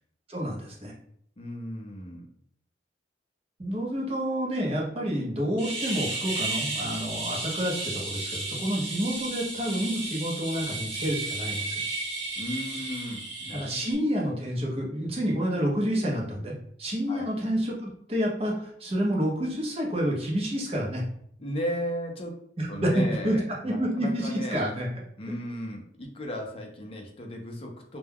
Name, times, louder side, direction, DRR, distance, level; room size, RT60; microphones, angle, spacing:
voice 1, 0.3-0.9 3.6-11.8 13.5-21.0 22.6-23.4 23.6-24.9, equal, 30° right, -2 dB, 0.7 m, -29 dB
voice 2, 1.4-2.3 12.4-13.8 14.3-14.4 17.1-17.3 21.4-22.3 22.7-24.6 25.2-28.0, equal, 30° left, 1 dB, 0.5 m, -35 dB
sound 1, 5.6-13.9, right 2 dB, 80° right, 1.0 m, -33 dB
2.2 x 2.2 x 3.3 m, 0.68 s
head